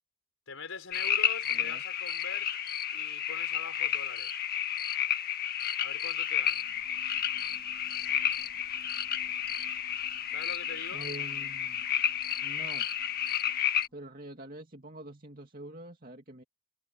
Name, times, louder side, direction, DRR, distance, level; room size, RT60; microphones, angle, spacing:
voice 1, 0.5-2.5 2.9-4.4 5.8-6.6 10.3-11.1, left 4 dB, 80° left, 4.4 m, -43 dB
sound 1, 0.9-13.9, left 9 dB, 45° left, 1.5 m, -31 dB
voice 2, 1.5-1.8 10.9-11.8 12.4-12.9 13.9-16.4, right 1 dB, 45° right, 2.5 m, -45 dB
sound 2, 6.3-14.2, equal, 15° left, 5.3 m, -61 dB
head